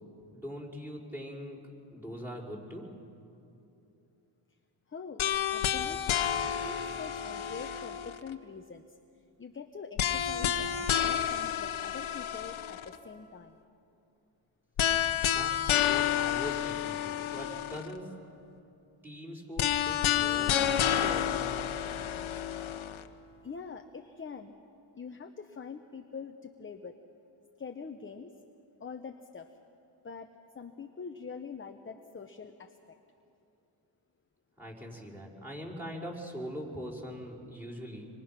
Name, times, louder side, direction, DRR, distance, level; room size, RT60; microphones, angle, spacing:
voice 1, 0.3-1.6 1.9-2.9 15.3-18.1 19.0-21.7 34.6-38.0, equal, 5° right, -2 dB, 5.3 m, -42 dB
voice 2, 4.9-5.2 5.5-6.2 6.6-8.8 9.4-13.6 23.4-24.6 24.9-27.0 27.6-28.3 28.8-29.5 30.0-32.8, left 5 dB, 25° left, 6 dB, 0.9 m, -44 dB
sound 1, 5.2-8.3 10.0-13.0 14.8-17.9 19.6-23.0, left 10 dB, 70° left, 1.2 m, -30 dB
26.0 x 25.0 x 6.0 m, 2.7 s
cardioid pair, 95°, 50 cm